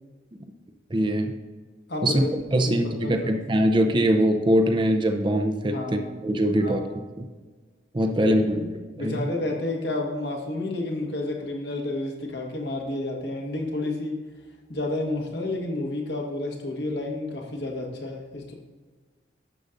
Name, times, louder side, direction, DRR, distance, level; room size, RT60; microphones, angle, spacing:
voice 1, 0.9-1.3 2.0-2.2 2.5-6.8 7.2-7.3 7.9-8.6 9.0-9.3, equal, 25° right, 5 dB, 0.5 m, -22 dB
voice 2, 1.9-2.3 2.6-2.7 3.0-3.3 5.7-6.1 6.6-6.9 8.2-8.7 9.0-14.2 14.7-18.5, left 2 dB, 65° left, 0 dB, 1.4 m, -30 dB
11.5 x 6.7 x 2.5 m, 1.3 s
head